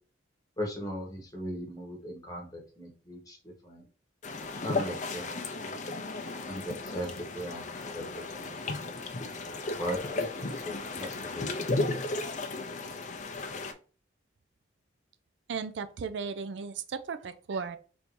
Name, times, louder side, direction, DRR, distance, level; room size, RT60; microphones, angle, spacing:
voice 1, 0.6-3.8 4.6-5.8 6.5-8.8 9.8-11.7, equal, 20° left, -1 dB, 1.0 m, -38 dB
sound 1, 4.2-13.7, left 3 dB, 40° left, 0.5 m, -35 dB
voice 2, 15.5-17.8, right 5 dB, 70° right, 11 dB, 0.4 m, -35 dB
3.4 x 2.7 x 4.5 m, 0.38 s
head